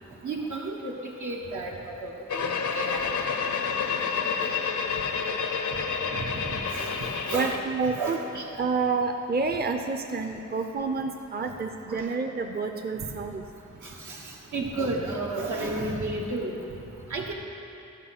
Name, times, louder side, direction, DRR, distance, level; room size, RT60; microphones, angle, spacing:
voice 1, 0.2-3.1 6.2-7.6 7.8-8.4 11.4-11.5 11.9-12.1 13.8-16.6 17.1-17.3, right 2 dB, 80° right, -2 dB, 1.4 m, -33 dB
sound 1, 2.3-7.6, left 6 dB, 85° left, 0.7 m, -29 dB
voice 2, 7.3-8.2 8.6-13.4, right 4 dB, 35° right, 5 dB, 0.6 m, -29 dB
13.0 x 5.4 x 5.9 m, 2.7 s
cardioid pair, 60°, 29 cm